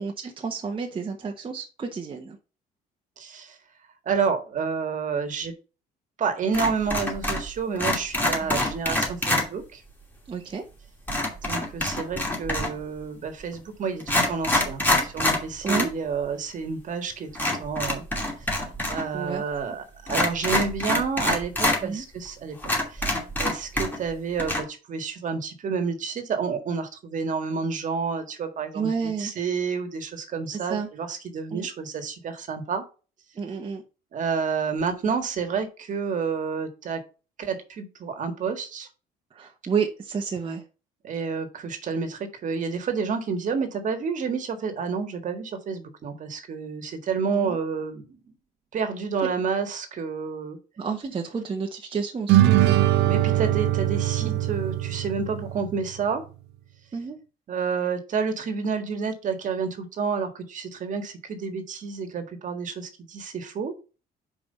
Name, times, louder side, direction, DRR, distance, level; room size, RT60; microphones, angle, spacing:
voice 1, 0.0-2.4 8.4-8.6 10.3-10.6 15.6-15.9 19.1-19.4 21.8-22.0 28.7-29.3 30.7-30.9 31.5-31.7 33.4-33.8 39.3-40.6 47.3-47.6 50.8-52.6 54.2-54.4 56.9-57.2, right 5 dB, 30° right, 1 dB, 1.1 m, -30 dB
voice 2, 3.2-3.5 4.0-5.5 6.2-9.8 11.4-18.0 18.9-32.8 34.1-37.0 37.4-38.9 41.0-48.2 48.7-50.6 53.0-56.2 57.5-63.7, right 5 dB, 50° right, 7 dB, 1.7 m, -29 dB
sound 1, 6.5-7.5 7.8-9.5 11.1-12.8 13.5-13.6 14.0-15.9 16.2-16.3 17.3-19.0 19.3-19.4 20.1-21.8 22.3-22.4 22.6-24.1 24.4-24.6, left 1 dB, 10° left, 2.6 m, -25 dB
sound 2, 52.3-55.9, right 13 dB, 80° right, 0.9 m, -21 dB
5.4 x 4.8 x 5.4 m, 0.33 s
cardioid pair, 110°, 17 cm